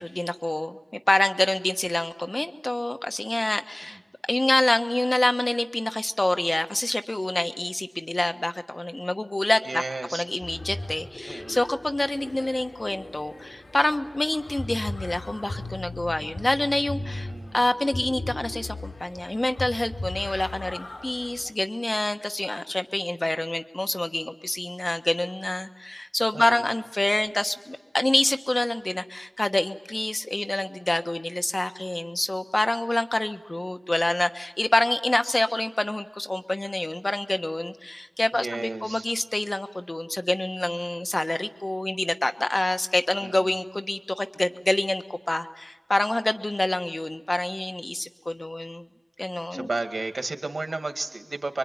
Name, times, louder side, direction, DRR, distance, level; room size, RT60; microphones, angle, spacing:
voice 1, 0.0-4.0 4.3-9.8 10.1-48.9 49.2-49.7, left 1 dB, 40° left, 8 dB, 1.2 m, -27 dB
voice 2, 9.6-10.2 11.3-11.6 16.9-17.6 26.3-26.6 38.3-39.1 43.2-43.5 49.5-51.6, right 3 dB, 80° right, 6 dB, 2.0 m, -33 dB
sound 1, 10.4-21.5, left 2 dB, 85° left, 3.9 m, -38 dB
25.5 x 23.5 x 9.6 m, 1.2 s
wide cardioid pair, 60°, 0 cm